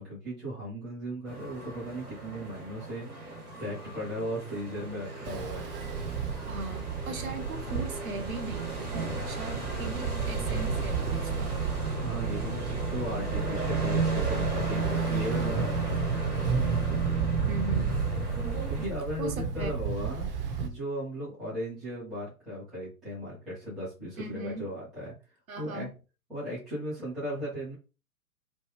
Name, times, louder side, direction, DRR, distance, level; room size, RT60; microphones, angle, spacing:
voice 1, 0.0-5.6 9.5-10.0 11.9-16.0 18.7-25.1 25.6-25.9 26.3-27.7, equal, ahead, 0.4 m, -37 dB
sound 1, 1.3-18.9, right 2 dB, 90° right, 1.4 m, -34 dB
Ocean, 5.2-20.7, right 6 dB, 40° right, 0.8 m, -32 dB
voice 2, 6.5-11.6 17.5-18.0 19.2-19.7 24.2-24.7 25.5-25.9, right 2 dB, 70° right, 0.9 m, -38 dB
3.1 x 2.2 x 3.2 m
figure-of-eight pair, 120°, 44 cm